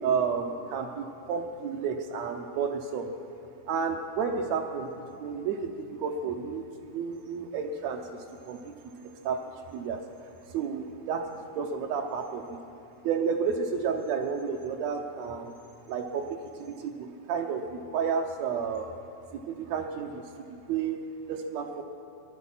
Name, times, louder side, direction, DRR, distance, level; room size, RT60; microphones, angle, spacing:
voice 1, 0.0-3.1 3.7-8.0 8.5-9.4 9.7-10.0 10.5-12.6 13.0-15.5 15.9-18.9 19.3-21.0 21.3-21.8, right 6 dB, 90° right, 3 dB, 1.5 m, -31 dB
20.0 x 11.0 x 5.6 m, 2.6 s
omnidirectional pair, 4.0 m